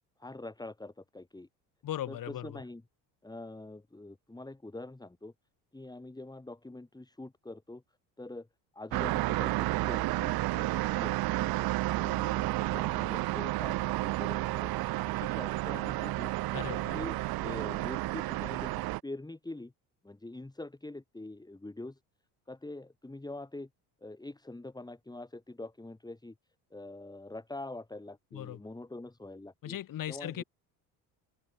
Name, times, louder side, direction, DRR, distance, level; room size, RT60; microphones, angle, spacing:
voice 1, 0.2-1.5 2.1-2.8 3.2-5.3 5.7-7.8 8.2-8.5 8.7-11.6 12.0-16.3 16.9-19.7 20.0-22.0 22.5-23.7 24.0-26.3 26.7-29.8 30.1-30.4, left 2 dB, 10° left, 3.8 m, -44 dB
voice 2, 1.8-2.6 16.5-17.0 28.3-28.6 29.6-30.4, left 12 dB, 55° left, 2.1 m, -38 dB
sound 1, 8.9-19.0, right 19 dB, 60° right, 0.8 m, -31 dB
open air
supercardioid pair, 85°, 40 cm